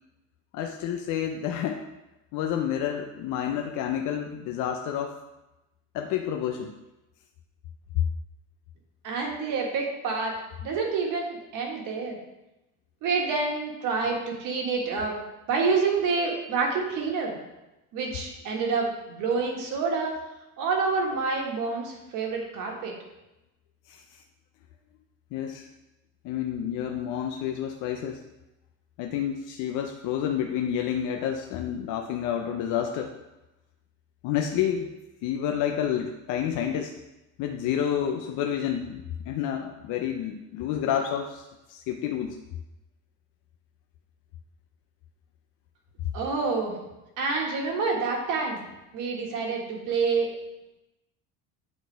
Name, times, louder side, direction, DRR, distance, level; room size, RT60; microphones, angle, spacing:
voice 1, 0.5-1.8 2.3-5.2 5.9-6.7 23.9-24.0 25.3-25.7 26.2-28.2 29.0-33.1 34.2-34.9 35.2-36.9 37.4-42.4, left 9 dB, 60° left, 3 dB, 0.6 m, -29 dB
voice 2, 9.0-10.3 10.6-12.2 13.0-15.1 15.5-17.4 17.9-20.1 20.6-22.9 46.1-46.8 47.2-48.6 48.9-50.3, right 4 dB, 60° right, 0 dB, 1.6 m, -27 dB
9.0 x 4.2 x 4.6 m, 0.98 s
cardioid pair, 170°, 35 cm